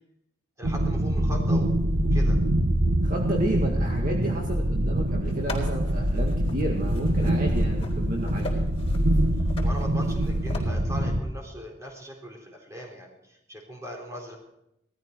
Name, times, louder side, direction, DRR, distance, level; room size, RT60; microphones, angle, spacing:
voice 1, 0.6-2.4 9.6-14.4, equal, 15° right, 0 dB, 3.8 m, -40 dB
sound 1, 0.6-11.2, right 1 dB, 90° right, 1.4 m, -24 dB
voice 2, 3.0-8.5, right 1 dB, 40° right, 0 dB, 2.0 m, -32 dB
sound 2, 5.3-10.6, left 3 dB, 30° left, 3.9 m, -42 dB
18.5 x 13.5 x 4.7 m, 0.81 s
head